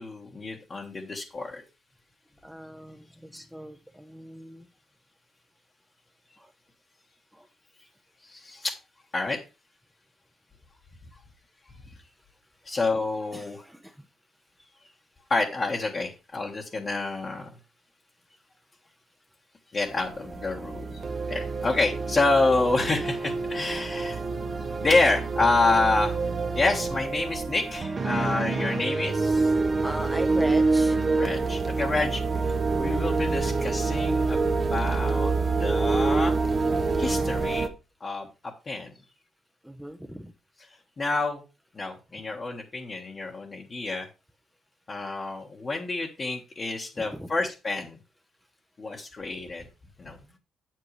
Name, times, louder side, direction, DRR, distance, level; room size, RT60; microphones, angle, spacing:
voice 1, 0.0-1.6 8.2-8.7 9.1-9.4 12.6-13.6 15.3-17.5 19.7-21.0 21.3-24.2 24.8-26.2 26.5-29.5 31.2-32.2 32.8-34.4 34.7-35.3 35.6-36.4 37.0-37.7 38.0-38.3 38.7-38.9 41.0-41.4 41.7-44.1 44.9-48.0 48.8-49.7 50.0-50.2, left 3 dB, 35° left, -2 dB, 1.4 m, -28 dB
voice 2, 2.4-4.7 6.4-6.5 7.3-7.5 12.2-12.3 13.3-14.1 22.8-23.0 29.6-31.0 39.6-40.3 47.0-47.3, equal, 5° right, 5 dB, 0.8 m, -39 dB
sound 1, 19.9-37.7, right 3 dB, 35° right, 0.9 m, -27 dB
7.8 x 7.6 x 3.3 m, 0.30 s
cardioid pair, 90°, 0 cm